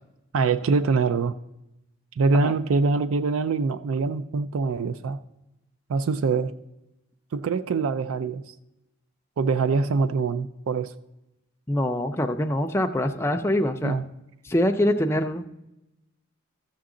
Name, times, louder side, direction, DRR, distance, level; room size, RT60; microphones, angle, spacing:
voice 1, 0.3-1.3 2.2-5.2 5.9-6.5 7.3-8.5 9.4-10.9 13.8-14.0, right 4 dB, 80° right, 13 dB, 0.4 m, -24 dB
voice 2, 11.7-14.0 14.4-15.5, left 1 dB, 10° left, 4 dB, 0.4 m, -24 dB
13.5 x 7.1 x 3.7 m, 0.92 s
head